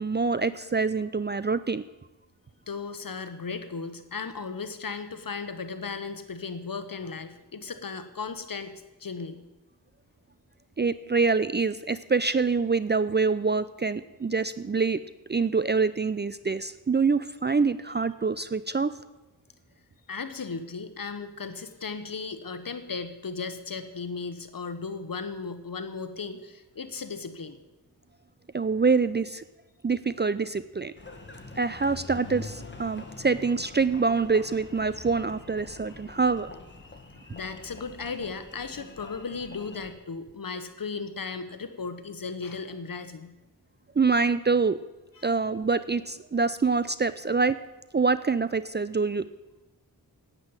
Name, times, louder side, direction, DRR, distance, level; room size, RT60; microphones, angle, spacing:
voice 1, 0.0-1.8 10.8-15.0 15.3-19.0 28.5-29.4 29.8-30.9 31.6-36.5 44.0-44.8 45.2-47.6 47.9-49.3, right 4 dB, 25° right, 15 dB, 0.4 m, -25 dB
voice 2, 2.7-9.4 20.1-27.6 37.1-43.3 45.2-45.3, left 4 dB, 55° left, 10 dB, 1.3 m, -36 dB
Engine, 31.0-39.9, left 2 dB, 25° left, 1.9 m, -45 dB
9.6 x 8.4 x 8.9 m, 1.1 s
cardioid pair, 50°, 41 cm